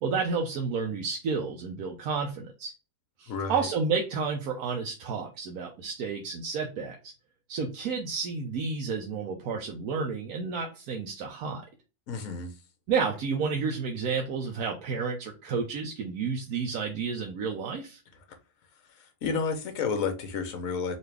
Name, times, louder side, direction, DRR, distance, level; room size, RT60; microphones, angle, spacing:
voice 1, 0.0-2.7 3.2-7.1 7.5-11.6 12.9-18.0, right 5 dB, 85° right, 1.2 m, -31 dB
voice 2, 3.3-3.7 12.1-12.5 19.0-21.0, left 5 dB, 70° left, 1.2 m, -31 dB
4.0 x 2.7 x 3.2 m
omnidirectional pair, 1.5 m